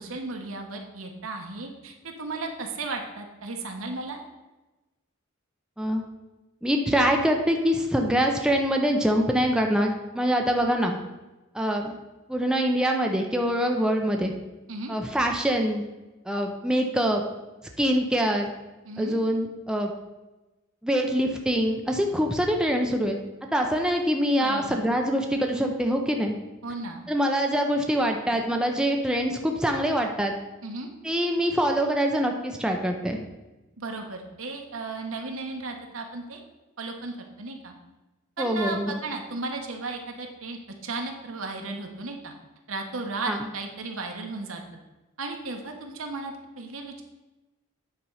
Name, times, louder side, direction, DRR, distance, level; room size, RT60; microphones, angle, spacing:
voice 1, 0.0-4.2 14.7-15.0 18.8-19.2 24.4-24.8 26.6-27.0 30.6-30.9 33.8-36.4 36.8-37.7 38.4-42.3 42.7-44.6 45.2-47.0, right 3 dB, 75° right, 3 dB, 1.3 m, -35 dB
voice 2, 6.6-11.0 11.5-12.0 12.3-14.3 14.9-15.8 16.3-17.2 17.8-18.5 19.0-19.9 20.8-23.2 23.5-26.4 27.1-30.3 31.0-33.2 38.4-38.9 43.3-43.5, equal, 5° right, 2 dB, 0.6 m, -24 dB
8.7 x 4.5 x 5.5 m, 1.1 s
head